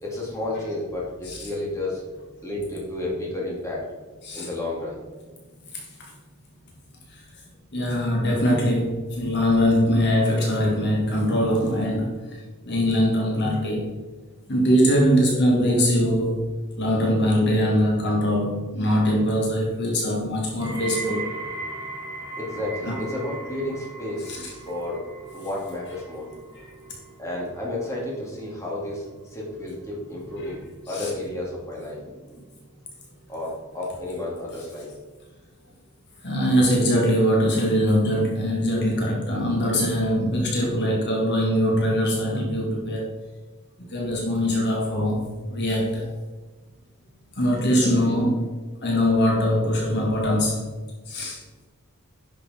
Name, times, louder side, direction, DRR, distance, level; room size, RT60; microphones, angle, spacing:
voice 1, 0.0-2.0 2.4-3.9 4.3-5.0 22.4-24.4 24.7-25.0 25.3-26.3 27.2-32.1 33.3-34.9 35.7-35.8 47.8-48.1, left 1 dB, 15° left, -4 dB, 2.5 m, -31 dB
voice 2, 7.7-12.2 12.6-14.0 14.5-16.5 16.8-21.2 22.8-23.0 24.3-24.5 26.5-26.6 30.9-31.1 36.2-43.1 43.9-46.1 47.4-48.5 48.8-50.6 51.1-51.4, equal, 50° left, -1 dB, 1.7 m, -22 dB
sound 1, 20.6-31.7 32.0-32.6 33.3-33.4, right 3 dB, 20° right, 1.9 m, -39 dB
10.5 x 6.6 x 4.4 m, 1.3 s
head